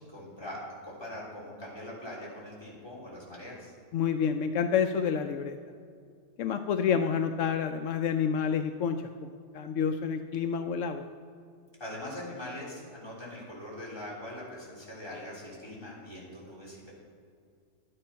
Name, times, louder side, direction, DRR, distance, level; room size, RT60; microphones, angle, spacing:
voice 1, 0.1-3.7 11.8-16.9, left 1 dB, 20° left, -6 dB, 3.7 m, -42 dB
voice 2, 3.9-5.6 6.4-11.1, left 7 dB, 80° left, 7 dB, 0.9 m, -29 dB
11.5 x 9.9 x 5.7 m, 2.3 s
omnidirectional pair, 1.3 m